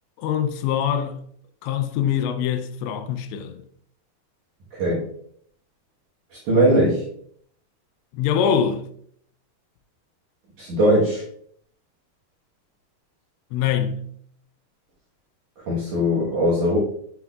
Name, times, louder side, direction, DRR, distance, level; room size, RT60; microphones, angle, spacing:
voice 1, 0.2-1.2 1.6-3.6 8.1-8.8 13.5-14.1, left 8 dB, 85° left, 2.8 m, -24 dB
voice 2, 6.5-7.0 10.6-11.2 15.7-16.8, equal, 65° right, 2.1 m, -19 dB
7.7 x 6.0 x 2.3 m
omnidirectional pair, 5.1 m